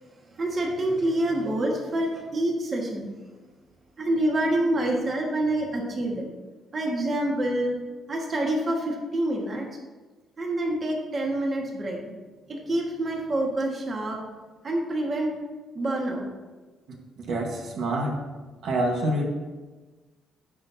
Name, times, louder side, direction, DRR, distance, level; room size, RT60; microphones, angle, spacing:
voice 1, 0.4-3.1 4.0-6.3 6.7-7.8 8.1-9.6 10.4-12.1 12.5-14.2 14.6-15.3 15.7-16.3, right 1 dB, 30° right, -1 dB, 1.7 m, -27 dB
voice 2, 17.3-18.2 18.6-19.3, right 1 dB, 65° right, 0 dB, 1.5 m, -26 dB
15.5 x 6.0 x 2.8 m, 1.3 s
cardioid pair, 135°, 0 cm